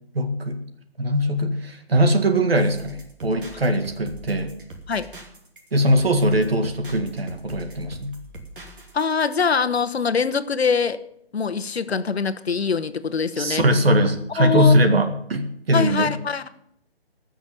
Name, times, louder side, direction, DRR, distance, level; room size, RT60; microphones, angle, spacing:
voice 1, 0.1-0.6 1.0-4.5 5.7-8.2 13.4-16.1, equal, 70° right, 6 dB, 2.0 m, -21 dB
sound 1, 2.6-9.4, right 2 dB, 55° right, 2.7 m, -42 dB
voice 2, 8.9-11.0 11.3-13.6 14.4-14.8 15.7-16.5, left 5 dB, 80° left, 11 dB, 1.1 m, -23 dB
18.5 x 6.3 x 7.0 m, 0.73 s
hypercardioid pair, 175°, 31 cm